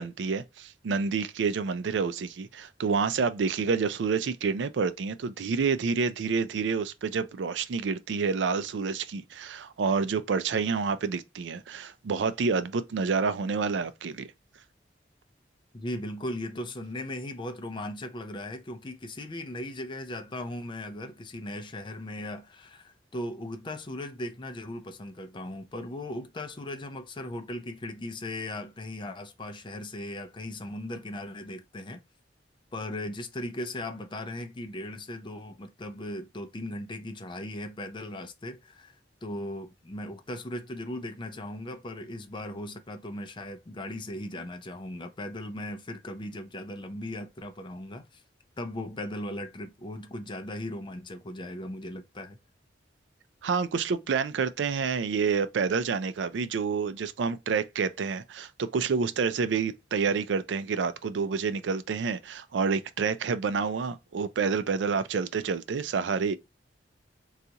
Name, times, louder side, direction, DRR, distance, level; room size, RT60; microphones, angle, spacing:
voice 1, 0.0-14.3 53.4-66.4, right 5 dB, 70° right, 0.4 m, -28 dB
voice 2, 15.7-32.0 32.7-48.2 48.6-52.4, left 1 dB, 25° left, 0.5 m, -38 dB
3.9 x 2.4 x 2.8 m
head